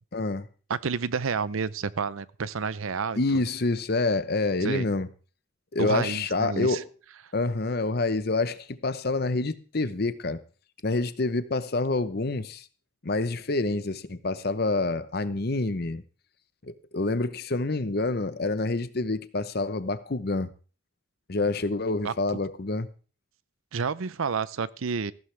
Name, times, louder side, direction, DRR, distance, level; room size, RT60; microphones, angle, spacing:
voice 1, 0.1-0.5 3.2-5.1 5.7-6.8 7.3-10.4 10.8-12.6 13.0-16.0 16.9-20.5 21.3-22.9, left 2 dB, 50° left, 0.8 m, -27 dB
voice 2, 0.7-3.4 4.6-4.9 5.8-6.8 22.0-22.1 23.7-25.1, right 5 dB, 85° right, 0.6 m, -30 dB
15.0 x 12.5 x 3.3 m
head